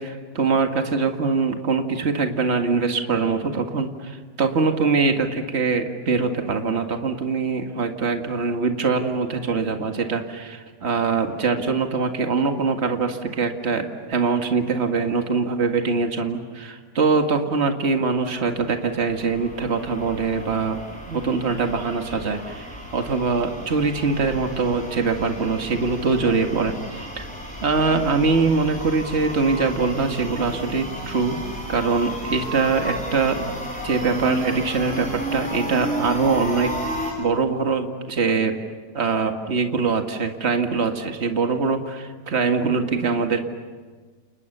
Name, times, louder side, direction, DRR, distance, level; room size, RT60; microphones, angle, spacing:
voice 1, 0.0-20.8 21.1-27.3 27.6-31.4 31.7-33.5 33.8-36.7 37.2-38.6 38.9-43.5, right 4 dB, 40° right, 4 dB, 2.1 m, -23 dB
sound 1, 18.4-37.1, equal, 5° left, 7.1 m, -33 dB
29.5 x 29.5 x 6.8 m, 1.5 s
omnidirectional pair, 1.9 m